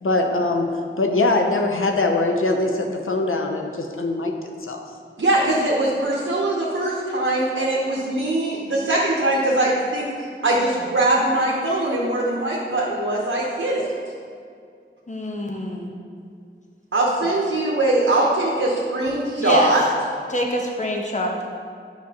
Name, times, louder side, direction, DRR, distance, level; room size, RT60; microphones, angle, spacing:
voice 1, 0.0-4.9, left 2 dB, 90° left, 3 dB, 0.6 m, -22 dB
voice 2, 5.2-10.1 10.4-13.9 16.9-19.8, right 2 dB, 90° right, -5 dB, 0.9 m, -21 dB
voice 3, 15.1-15.9 19.4-19.7 20.3-21.5, left 1 dB, 35° left, 0 dB, 0.9 m, -25 dB
8.8 x 5.7 x 2.9 m, 2.2 s
wide cardioid pair, 50°, 21 cm